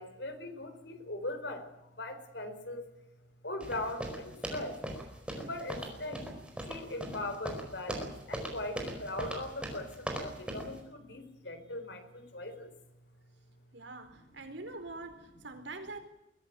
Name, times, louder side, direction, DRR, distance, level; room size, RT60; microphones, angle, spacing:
voice 1, 0.0-2.8 3.4-4.8 5.4-6.3 6.7-12.7, left 1 dB, 60° left, 8 dB, 4.2 m, -40 dB
sound 1, 3.6-10.8, right 1 dB, 5° right, 4.7 m, -39 dB
voice 2, 13.7-16.0, right 2 dB, 70° right, 7 dB, 4.4 m, -44 dB
22.5 x 16.5 x 9.1 m, 0.92 s
head